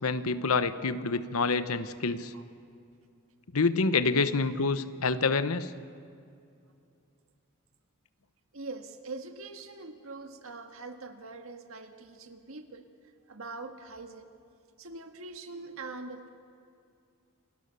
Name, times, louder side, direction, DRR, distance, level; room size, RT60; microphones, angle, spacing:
voice 1, 0.0-2.3 3.5-5.7, left 4 dB, 85° left, 12 dB, 1.0 m, -27 dB
voice 2, 8.5-12.9 13.3-14.3 14.8-16.3, right 3 dB, 75° right, 6 dB, 1.6 m, -43 dB
28.0 x 19.0 x 6.9 m, 2.4 s
head